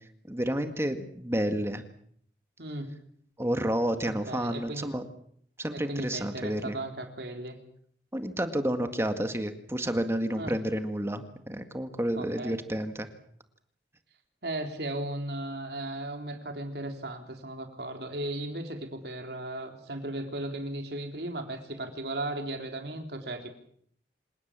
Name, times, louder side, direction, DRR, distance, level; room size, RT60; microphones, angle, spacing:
voice 1, 0.3-1.8 3.4-5.1 5.6-6.8 8.1-13.1, right 1 dB, 15° right, 7 dB, 1.9 m, -30 dB
voice 2, 2.6-2.9 4.0-4.9 5.7-7.6 10.4-10.5 12.2-12.6 14.4-23.5, right 1 dB, 70° right, 4 dB, 3.6 m, -36 dB
27.0 x 18.5 x 7.5 m, 0.63 s
head